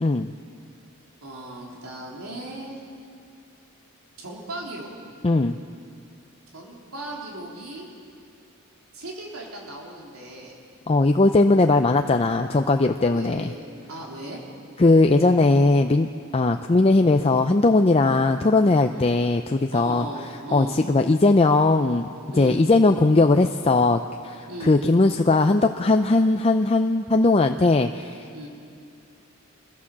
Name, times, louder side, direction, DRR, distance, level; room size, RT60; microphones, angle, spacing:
voice 1, 0.0-0.3 5.2-5.6 10.9-13.5 14.8-20.1 20.5-22.1 22.4-28.2, left 2 dB, 30° left, 6 dB, 0.5 m, -19 dB
voice 2, 1.2-2.8 4.2-4.9 6.5-7.9 8.9-10.6 13.1-14.4 18.9-19.2 19.7-20.8 22.3-22.6 24.4-24.8 28.3-28.5, right 1 dB, 85° right, -2 dB, 3.7 m, -37 dB
24.5 x 16.0 x 7.3 m, 2.4 s
head